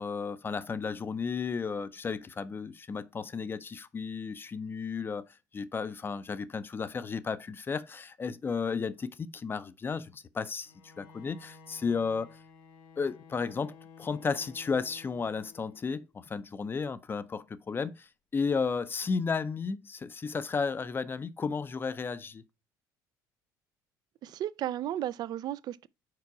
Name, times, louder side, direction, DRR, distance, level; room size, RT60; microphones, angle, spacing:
voice 1, 0.0-5.2 5.5-12.4 13.0-22.4, left 5 dB, 25° left, 0.4 m, -33 dB
Bowed string instrument, 10.6-16.0, left 5 dB, 80° left, 0.9 m, -53 dB
voice 2, 24.2-25.9, right 12 dB, 55° right, 0.4 m, -34 dB
4.8 x 4.6 x 4.7 m
cardioid pair, 105°, 8 cm